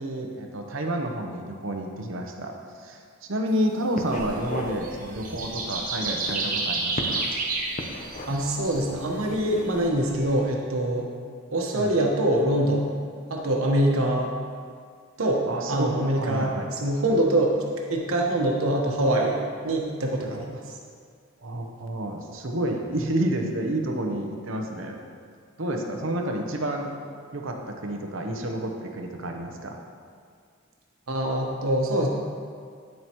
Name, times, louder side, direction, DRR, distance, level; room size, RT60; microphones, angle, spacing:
voice 1, 0.0-7.2 11.7-11.9 14.0-14.1 15.5-16.7 21.4-25.0 25.6-26.9 27.3-29.8, right 1 dB, 65° right, 3 dB, 0.9 m, -30 dB
sound 1, 3.5-3.7 3.9-4.8 5.2-5.3 6.1-7.4 7.7-8.6 9.2-9.7, left 1 dB, 35° left, 0.7 m, -36 dB
sound 2, 4.1-10.5, right 3 dB, 40° right, 1.0 m, -31 dB
voice 2, 8.3-11.1 11.5-12.9 13.3-14.3 15.2-15.4 15.7-16.5 16.8-17.6 17.9-20.6 31.1-32.1, right 1 dB, 90° right, 0 dB, 1.2 m, -24 dB
9.5 x 7.5 x 3.0 m, 2.1 s
head